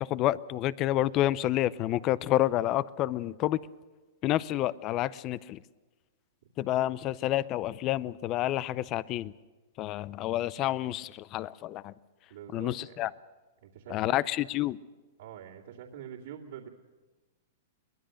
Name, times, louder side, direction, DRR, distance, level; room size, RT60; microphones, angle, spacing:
voice 1, 0.0-3.6 4.2-5.6 6.6-9.3 9.8-11.9 12.5-13.1 13.9-14.8, left 14 dB, 35° left, 19 dB, 0.6 m, -29 dB
voice 2, 12.3-13.0 13.6-14.2 15.2-16.7, right 9 dB, 70° right, -6 dB, 2.6 m, -45 dB
23.0 x 20.5 x 6.5 m, 1.2 s
hypercardioid pair, 145°, 0 cm